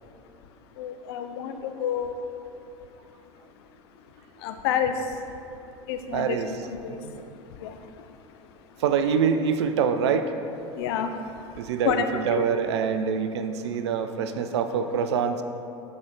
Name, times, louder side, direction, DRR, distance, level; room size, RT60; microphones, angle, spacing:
voice 1, 0.8-2.2 4.4-5.2 5.9-6.4 6.8-7.0 7.6-8.0 10.7-11.5 11.8-12.0 12.3-12.4, left 8 dB, 55° left, 7 dB, 0.4 m, -29 dB
voice 2, 6.1-6.5 7.0-7.3 8.8-10.3 11.6-15.4, right 7 dB, 65° right, 9 dB, 0.4 m, -25 dB
6.1 x 4.3 x 3.8 m, 2.6 s
figure-of-eight pair, 75°, 15 cm